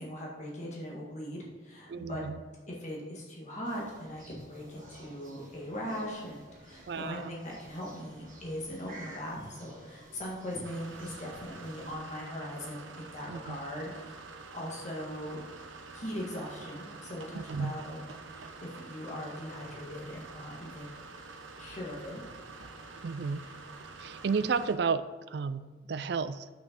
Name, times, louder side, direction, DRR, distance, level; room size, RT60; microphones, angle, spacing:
voice 1, 0.0-2.2 2.7-14.2 14.5-15.4 15.9-18.0 18.3-21.0 21.6-22.2, equal, 35° left, -3 dB, 1.7 m, -40 dB
voice 2, 1.9-2.4 6.9-7.3 13.3-13.6 17.3-17.8 23.0-23.4 24.0-26.5, right 5 dB, 60° right, 14 dB, 0.4 m, -33 dB
sound 1, 3.6-11.9, right 1 dB, 40° right, 1.5 m, -52 dB
sound 2, 10.6-24.8, right 3 dB, 80° right, 0.8 m, -47 dB
6.3 x 5.7 x 5.2 m, 1.4 s
head